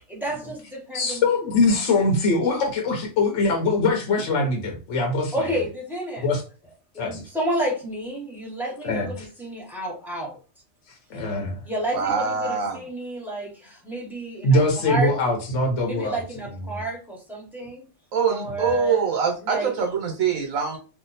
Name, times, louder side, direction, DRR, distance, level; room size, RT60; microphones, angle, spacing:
voice 1, 0.1-1.2 5.3-6.3 6.9-10.4 11.6-15.1 15.9-17.8 18.3-19.0 19.4-19.7, right 1 dB, ahead, 1.2 m, -30 dB
voice 2, 0.9-5.6 6.2-6.4 7.0-7.2 8.8-9.3 11.1-11.6 14.4-16.2 16.5-16.8, left 2 dB, 65° left, 1.1 m, -22 dB
voice 3, 11.9-12.8 18.1-20.8, right 6 dB, 80° right, 1.2 m, -24 dB
2.8 x 2.4 x 4.0 m
omnidirectional pair, 1.4 m